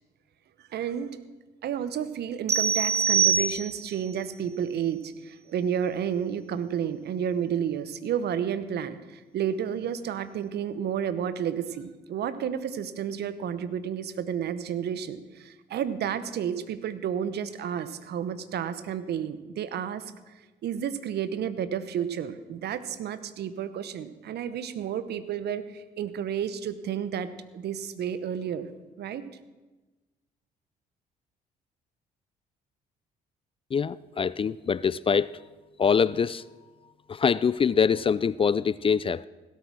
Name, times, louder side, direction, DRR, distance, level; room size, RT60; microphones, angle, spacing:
voice 1, 0.6-1.1 1.6-20.3 20.6-28.7 29.0-29.2, right 8 dB, 65° right, 14 dB, 1.0 m, -31 dB
sound 1, 2.5-4.0, right 6 dB, 35° right, 1.5 m, -24 dB
voice 2, 33.7-35.3 35.8-36.4 37.1-39.3, left 6 dB, 30° left, 19 dB, 0.4 m, -24 dB
16.5 x 8.5 x 6.2 m, 1.2 s
hypercardioid pair, 60°, 19 cm